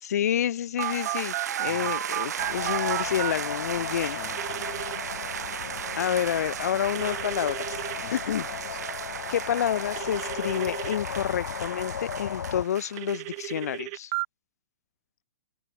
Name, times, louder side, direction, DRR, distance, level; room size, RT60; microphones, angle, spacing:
voice 1, 0.0-4.2 5.9-7.8 8.1-8.5 9.3-14.1, left 10 dB, 65° left, 3.5 m, -29 dB
Telephone, 0.8-3.3 4.3-5.0 6.9-8.0 10.0-11.0 13.0-14.2, right 40 dB or more, 30° right, 1.6 m, -33 dB
sound 1, 0.8-13.5, right 9 dB, 75° right, 5.2 m, -35 dB
sound 2, 2.4-12.6, left 8 dB, 85° left, 5.3 m, -37 dB
voice 2, 3.7-4.9 5.4-5.8 7.0-7.3 8.0-8.8, left 23 dB, 35° left, 4.0 m, -48 dB
hypercardioid pair, 165°, 9 cm